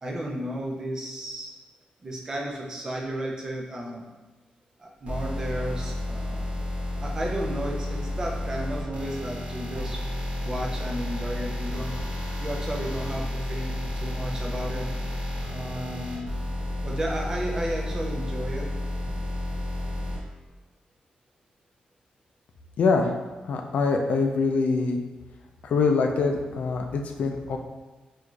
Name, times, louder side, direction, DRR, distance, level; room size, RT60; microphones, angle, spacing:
voice 1, 0.0-1.5 2.0-4.0 4.8-6.5 7.0-10.0 10.3-11.9 12.4-14.9 15.5-16.3 16.8-18.7, right 1 dB, 25° right, -1 dB, 0.5 m, -33 dB
sound 1, 5.1-20.2, left 1 dB, 60° right, 1.1 m, -31 dB
voice 2, 22.8-23.1 23.5-25.0 25.6-27.6, left 4 dB, 60° left, 3 dB, 0.4 m, -24 dB
4.6 x 2.5 x 2.3 m, 1.2 s
wide cardioid pair, 175°, 3 cm